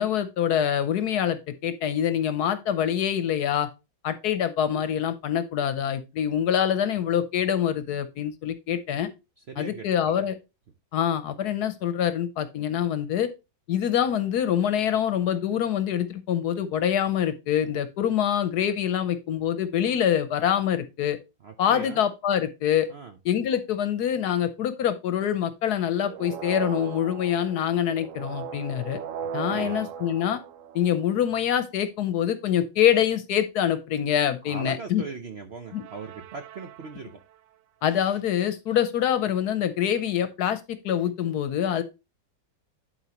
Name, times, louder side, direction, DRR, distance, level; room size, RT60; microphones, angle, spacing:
voice 1, 0.0-3.7 4.0-9.1 9.6-10.4 10.9-13.3 13.7-21.2 21.6-22.9 23.2-29.0 29.3-30.4 30.7-35.0 35.7-35.8 37.8-41.8, left 9 dB, 65° left, 1.2 m, -25 dB
voice 2, 9.5-10.2 21.4-22.0 22.9-23.2 29.2-29.9 34.4-37.2, right 4 dB, 55° right, 0.7 m, -40 dB
sound 1, 26.0-31.3 35.7-37.3, right 8 dB, 85° right, 0.7 m, -38 dB
11.5 x 4.6 x 2.9 m
omnidirectional pair, 1.9 m